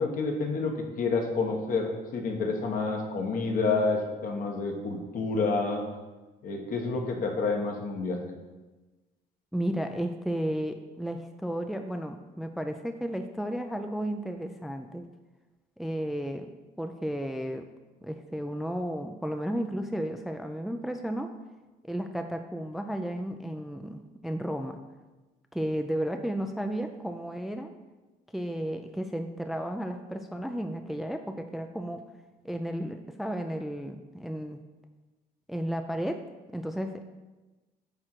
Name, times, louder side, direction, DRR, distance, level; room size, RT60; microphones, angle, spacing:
voice 1, 0.0-5.9 6.4-8.2, left 3 dB, 55° left, 3 dB, 1.3 m, -29 dB
voice 2, 9.5-15.1 15.8-16.5 16.8-17.6 18.0-21.3 21.8-24.8 25.5-27.7 28.3-32.0 32.4-34.6 35.5-36.2 36.5-37.0, equal, ahead, 6 dB, 0.4 m, -33 dB
8.8 x 3.7 x 4.5 m, 1.2 s
cardioid pair, 110°, 17 cm